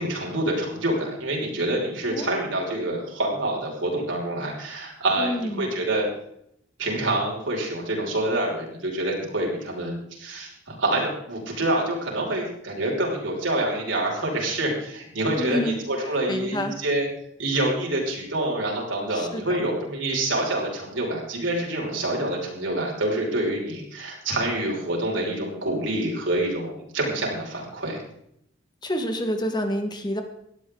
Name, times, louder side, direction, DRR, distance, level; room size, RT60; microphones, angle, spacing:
voice 1, 0.0-6.1 6.8-17.1 17.4-28.0, right 1 dB, 90° right, -1 dB, 5.8 m, -27 dB
voice 2, 5.2-5.8 15.4-16.8 19.1-19.6 28.8-30.2, equal, 20° left, 6 dB, 1.6 m, -29 dB
18.5 x 13.0 x 3.9 m, 0.75 s
head